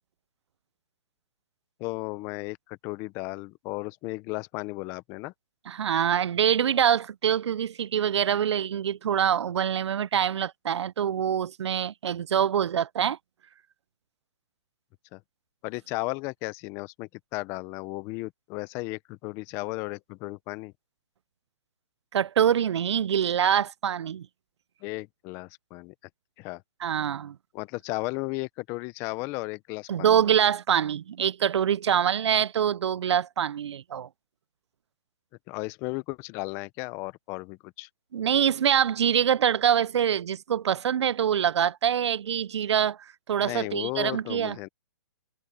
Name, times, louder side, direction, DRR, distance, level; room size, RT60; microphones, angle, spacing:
voice 1, 1.8-5.3 15.1-15.2 15.6-20.7 24.8-25.9 26.4-26.6 27.5-30.2 35.5-37.9 43.4-44.7, left 23 dB, 20° left, 0.5 m, -35 dB
voice 2, 5.7-13.2 22.1-24.3 26.8-27.4 29.9-34.1 38.1-43.0 43.3-44.6, right 9 dB, 85° right, 0.4 m, -25 dB
hypercardioid pair, 160°, 14 cm